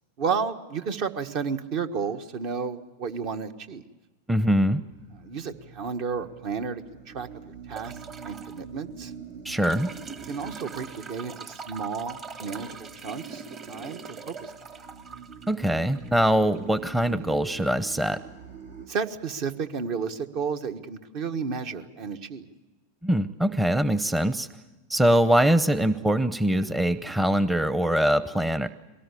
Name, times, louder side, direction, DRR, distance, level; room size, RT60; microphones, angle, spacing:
voice 1, 0.2-3.8 5.2-8.0 8.2-9.1 10.3-14.0 14.3-14.5 18.9-22.5, right 5 dB, 55° right, 8 dB, 1.5 m, -32 dB
voice 2, 4.3-4.8 9.4-9.9 15.5-18.2 23.0-24.5 24.9-28.7, equal, 10° right, 13 dB, 0.8 m, -23 dB
sound 1, 4.9-18.9, right 6 dB, 80° right, 4.2 m, -46 dB
sound 2, 7.8-8.6 9.6-16.6 18.0-18.1, right 5 dB, 30° right, 1.7 m, -41 dB
23.0 x 18.5 x 8.4 m, 1.2 s
hypercardioid pair, 105°, 0 cm